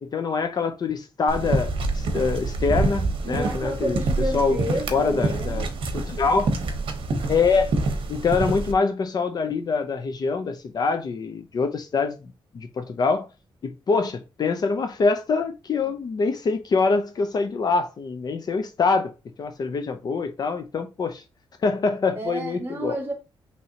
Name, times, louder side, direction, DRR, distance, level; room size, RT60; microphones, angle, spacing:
voice 1, 0.0-4.0 4.3-4.6 4.9-5.7 5.9-6.5 7.3-7.7 8.1-12.2 12.5-13.3 13.6-19.1 19.4-21.2 21.6-23.0, left 4 dB, 45° left, 0.6 m, -24 dB
sound 1, 1.3-8.7, right 3 dB, 70° right, 0.9 m, -26 dB
voice 2, 3.2-5.6 22.1-23.1, right 1 dB, 25° right, 1.8 m, -30 dB
5.5 x 3.1 x 2.8 m
wide cardioid pair, 150°, 9 cm